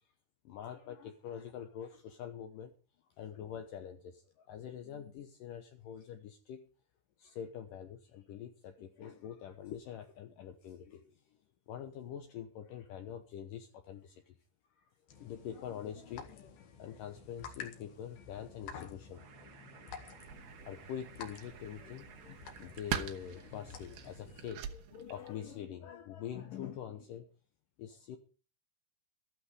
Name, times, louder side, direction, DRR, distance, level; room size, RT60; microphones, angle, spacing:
voice 1, 0.5-2.7 3.2-6.7 7.2-11.1 11.7-14.3 15.2-19.2 20.7-27.3 27.8-28.2, left 9 dB, 90° left, 7 dB, 1.9 m, -45 dB
sound 1, 15.1-24.5, left 6 dB, 60° left, 3.0 m, -52 dB
sound 2, 19.1-24.5, right 7 dB, 90° right, 1.4 m, -58 dB
sound 3, 20.2-25.6, right 9 dB, 70° right, 2.4 m, -44 dB
13.5 x 12.5 x 4.9 m, 0.35 s
omnidirectional pair, 5.3 m